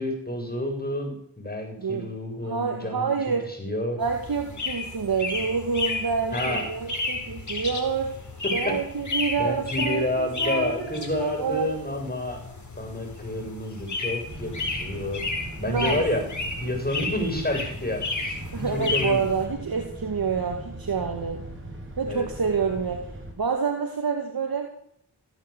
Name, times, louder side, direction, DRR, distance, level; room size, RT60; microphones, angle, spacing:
voice 1, 0.0-3.2 3.5-4.0 6.3-6.6 8.6-8.8 9.4-12.4 12.8-16.2 16.6-19.2 22.1-22.3, left 1 dB, 20° left, 4 dB, 7.0 m, -29 dB
voice 2, 2.5-3.5 4.0-8.1 8.5-11.7 15.6-16.0 18.5-21.4 22.0-23.1 23.4-24.7, right 5 dB, 60° right, 4 dB, 2.3 m, -27 dB
sound 1, 4.0-19.5, left 3 dB, 45° left, 4.5 m, -33 dB
sound 2, 14.3-23.3, right 1 dB, 30° right, 6.0 m, -39 dB
16.5 x 9.2 x 8.5 m, 0.69 s
cardioid pair, 45°, 41 cm